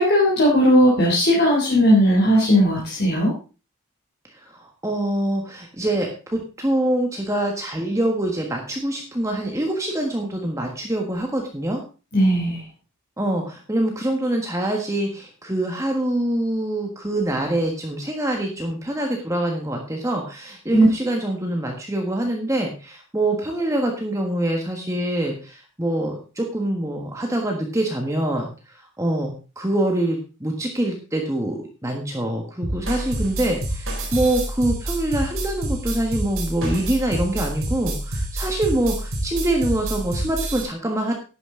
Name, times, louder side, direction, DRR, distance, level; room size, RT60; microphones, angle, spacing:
voice 1, 0.0-3.3 12.1-12.6 20.7-20.9, equal, 45° left, -4 dB, 3.3 m, -17 dB
voice 2, 4.4-11.8 13.2-41.1, right 1 dB, 15° right, 2 dB, 1.4 m, -25 dB
sound 1, 32.6-40.6, right 1 dB, 65° right, 3.5 m, -28 dB
11.5 x 9.4 x 3.8 m, 0.33 s
head